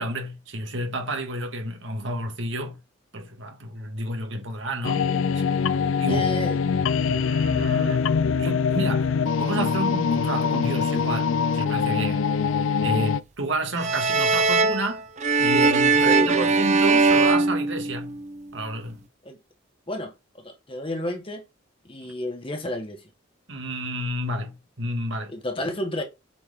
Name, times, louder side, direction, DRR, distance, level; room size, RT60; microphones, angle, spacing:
voice 1, 0.0-2.8 3.1-5.1 5.3-5.5 6.0-6.4 7.1-12.2 12.8-15.0 15.4-18.2 18.5-19.0 23.5-25.3, right 1 dB, 70° right, 1.9 m, -31 dB
sound 1, 4.8-13.2, left 6 dB, 75° left, 0.4 m, -23 dB
voice 2, 6.1-6.6 15.9-16.7 19.2-19.4 19.9-21.4 21.8-23.0 25.3-26.0, equal, 25° left, 1.4 m, -31 dB
sound 2, 13.8-18.4, right 3 dB, 35° right, 0.6 m, -21 dB
7.6 x 4.6 x 3.8 m
head